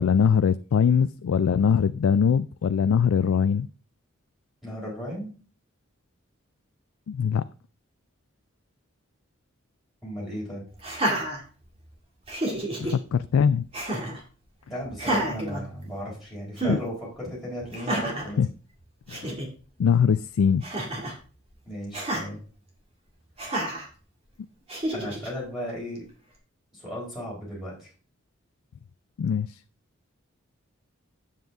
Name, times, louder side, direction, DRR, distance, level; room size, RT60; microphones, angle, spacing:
voice 1, 0.0-3.7 7.1-7.4 12.8-13.7 16.7-16.8 18.4-18.5 19.1-19.3 19.8-20.6 29.2-29.6, left 7 dB, 80° left, 0.3 m, -22 dB
voice 2, 4.6-5.3 10.0-10.7 14.7-18.4 21.7-22.4 24.9-26.0 26.7-27.9, equal, ahead, 4.0 m, -35 dB
Laughter, 10.8-11.9 12.3-12.9 13.7-14.2 14.9-16.2 16.6-16.8 17.7-18.3 18.8-18.9 19.1-19.5 20.6-21.2 21.9-22.3 23.4-23.9 24.7-25.3, right 1 dB, 25° right, 2.0 m, -29 dB
9.2 x 7.5 x 3.5 m
head